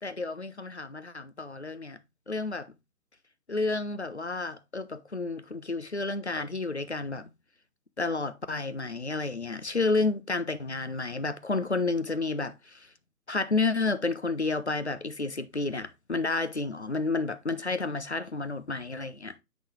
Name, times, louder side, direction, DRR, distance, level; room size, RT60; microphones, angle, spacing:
voice 1, 0.0-2.0 2.3-2.7 3.5-7.3 8.0-12.9 13.3-19.4, left 3 dB, 45° left, 0.5 m, -31 dB
9.1 x 4.1 x 3.1 m
figure-of-eight pair, 160°, 48 cm